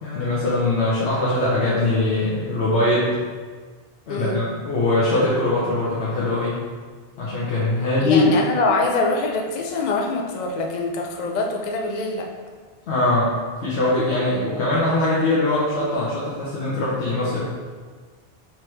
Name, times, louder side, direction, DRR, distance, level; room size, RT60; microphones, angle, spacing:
voice 1, 0.0-3.1 4.1-6.6 7.2-8.3 12.9-13.3 13.6-17.4, left 2 dB, 85° left, -8 dB, 1.1 m, -21 dB
voice 2, 4.1-4.4 8.0-12.3, left 3 dB, 50° left, 1 dB, 0.5 m, -24 dB
4.8 x 3.0 x 3.1 m, 1.5 s
omnidirectional pair, 1.1 m